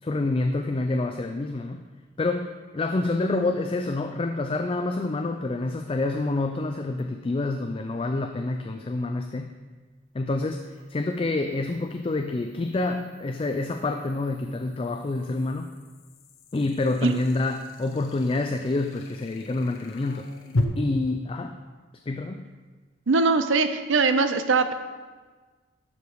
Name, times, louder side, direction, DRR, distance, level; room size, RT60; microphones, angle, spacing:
voice 1, 0.0-1.8 2.2-9.5 10.1-15.8 16.5-20.3 20.8-21.6 21.9-22.4, left 2 dB, 25° left, 5 dB, 0.3 m, -27 dB
sound 1, 7.0-7.1 10.5-20.6, left 2 dB, 90° left, 0.8 m, -38 dB
voice 2, 23.1-24.7, right 4 dB, 70° right, 9 dB, 0.6 m, -21 dB
11.5 x 5.0 x 4.7 m, 1.4 s
head